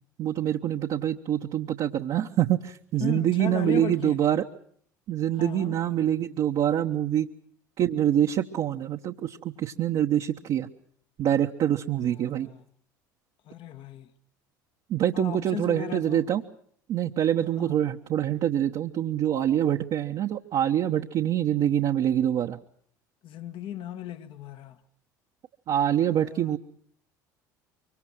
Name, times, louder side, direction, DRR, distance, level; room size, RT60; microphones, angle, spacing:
voice 1, 0.2-4.4 5.1-7.3 7.8-10.7 11.2-12.5 14.9-16.4 16.9-22.6 25.7-26.6, right 11 dB, 50° right, 1.1 m, -25 dB
voice 2, 3.0-4.4 5.4-5.8 12.2-12.6 13.5-14.1 15.1-16.2 17.6-17.7 23.2-24.8 26.1-26.5, left 9 dB, 55° left, 1.3 m, -36 dB
24.5 x 23.5 x 6.3 m
hypercardioid pair, 70°, 11 cm